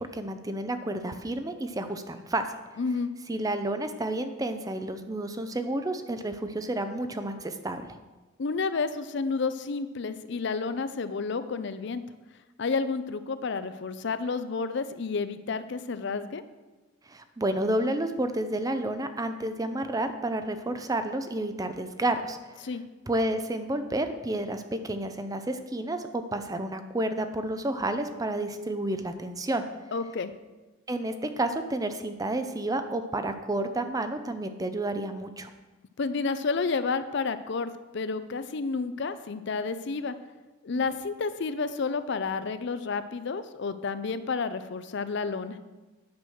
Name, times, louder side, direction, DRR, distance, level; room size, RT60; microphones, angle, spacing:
voice 1, 0.0-2.5 3.3-8.0 17.1-22.4 23.1-29.6 30.9-35.5 40.7-40.8, right 1 dB, 15° right, 8 dB, 0.5 m, -30 dB
voice 2, 2.8-3.1 8.4-12.0 12.6-16.4 22.6-22.8 29.9-30.3 36.0-40.1 40.6-45.6, left 4 dB, 60° left, 12 dB, 0.5 m, -30 dB
9.4 x 6.1 x 6.3 m, 1.2 s
head